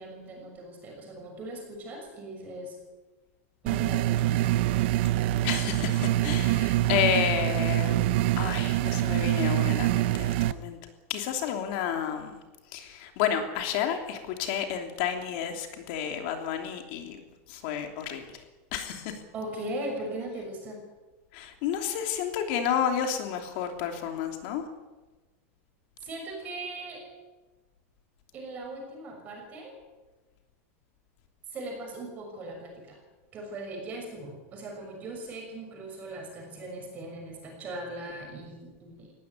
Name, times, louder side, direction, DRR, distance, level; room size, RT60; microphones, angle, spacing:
voice 1, 0.0-2.8 3.6-4.5 19.3-20.8 26.0-27.1 28.3-29.7 31.5-33.0 33.3-39.1, right 1 dB, 20° right, 2 dB, 6.3 m, -39 dB
sound 1, 3.7-10.5, right 14 dB, 50° right, 0.7 m, -25 dB
voice 2, 5.4-10.8 11.1-12.4 12.7-17.2 17.5-18.4 18.7-19.2 21.3-24.6, left 8 dB, 45° left, 5 dB, 3.0 m, -31 dB
20.0 x 17.0 x 9.6 m, 1.2 s
supercardioid pair, 180°, 8 cm